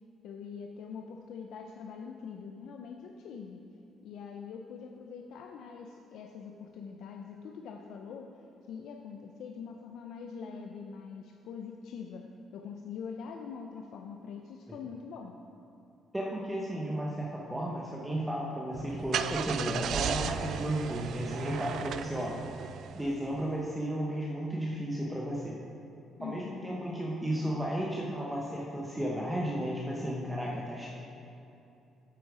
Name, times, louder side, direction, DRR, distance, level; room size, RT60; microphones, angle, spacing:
voice 1, 0.2-3.6 4.0-8.4 8.7-12.3 12.5-15.3 26.2-26.8, left 6 dB, 75° left, 3 dB, 0.5 m, -43 dB
voice 2, 16.1-22.3 22.9-25.6 26.2-30.9, equal, 10° right, -3 dB, 0.9 m, -34 dB
Car / Engine starting, 18.7-23.4, right 8 dB, 65° right, 0.3 m, -35 dB
8.6 x 8.1 x 4.9 m, 2.8 s
cardioid pair, 125°, 0 cm